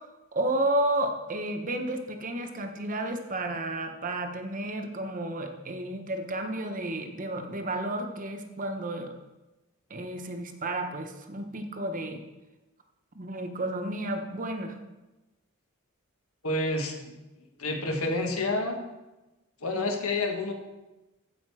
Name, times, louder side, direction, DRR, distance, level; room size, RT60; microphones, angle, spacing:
voice 1, 0.3-9.1 9.9-12.2 13.1-14.8, right 1 dB, 40° right, 5 dB, 0.9 m, -32 dB
voice 2, 16.4-17.1 17.6-18.8 19.6-20.5, left 2 dB, 80° left, 3 dB, 1.6 m, -29 dB
15.0 x 5.1 x 4.8 m, 1.1 s
head